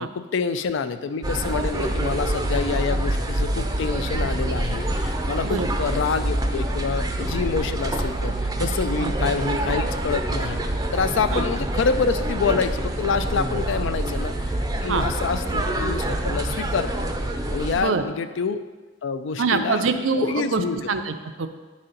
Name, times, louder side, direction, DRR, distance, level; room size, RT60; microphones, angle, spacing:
voice 1, 0.0-10.6 10.9-17.1 17.5-18.6 19.0-19.8 20.2-20.8, left 5 dB, 65° left, 11 dB, 0.4 m, -27 dB
sound 1, 1.2-17.8, right 1 dB, 20° right, 0.5 m, -26 dB
voice 2, 19.4-21.5, right 4 dB, 75° right, 8 dB, 0.5 m, -25 dB
9.6 x 4.2 x 3.8 m, 1.3 s
head